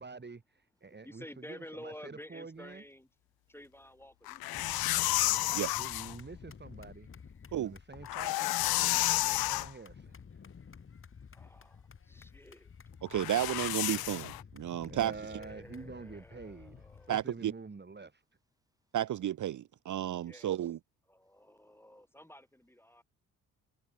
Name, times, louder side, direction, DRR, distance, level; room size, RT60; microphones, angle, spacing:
voice 1, 0.0-2.8 5.7-7.1 7.6-10.2 14.9-18.2, right 4 dB, 25° right, 2.6 m, -47 dB
voice 2, 1.0-3.1 3.5-4.8 11.3-12.7 15.2-17.2 20.2-20.5 21.1-23.0, left 1 dB, 5° left, 4.4 m, -51 dB
sound 1, 4.3-6.1 7.9-9.7 13.1-14.4, left 17 dB, 70° left, 0.6 m, -31 dB
sound 2, 4.5-17.2, left 6 dB, 35° left, 1.2 m, -52 dB
voice 3, 10.6-11.5 11.9-12.4 18.8-19.0 21.2-21.7, right 1 dB, 10° right, 7.6 m, -86 dB
voice 4, 13.0-15.1 17.1-17.5 18.9-20.8, right 11 dB, 50° right, 0.8 m, -32 dB
supercardioid pair, 55°, 38 cm